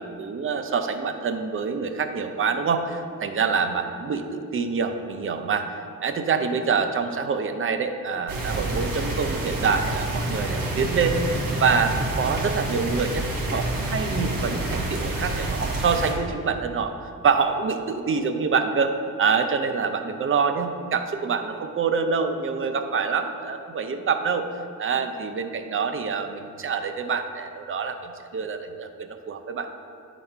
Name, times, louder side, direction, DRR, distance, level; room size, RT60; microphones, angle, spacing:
voice 1, 0.0-5.7 6.0-13.3 13.5-18.9 19.2-24.5 24.8-29.7, right 5 dB, 40° right, 7 dB, 0.6 m, -26 dB
sound 1, 8.3-16.1, right 2 dB, 85° right, 1.5 m, -28 dB
9.4 x 4.2 x 4.4 m, 2.6 s
cardioid pair, 115°, 32 cm